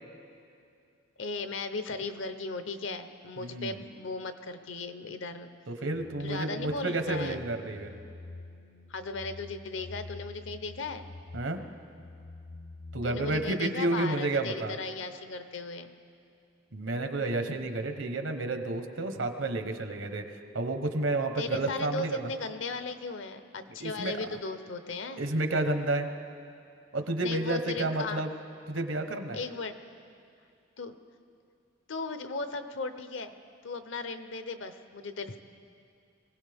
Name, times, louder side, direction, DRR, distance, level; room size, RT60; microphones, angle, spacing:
voice 1, 1.2-5.5 6.2-7.4 8.9-11.1 13.0-15.9 21.4-25.2 27.2-28.2 29.3-29.8 30.8-30.9 31.9-33.3 33.6-35.4, left 3 dB, 70° left, 9 dB, 0.8 m, -36 dB
voice 2, 3.4-3.8 5.7-8.0 11.3-11.6 12.9-14.7 16.7-22.3 23.8-24.2 25.2-26.1 26.9-28.3 28.7-29.4, right 2 dB, 75° right, 6 dB, 1.1 m, -31 dB
sound 1, 5.9-13.5, left 2 dB, 40° left, 0.4 m, -47 dB
24.0 x 17.0 x 3.6 m, 2.5 s
head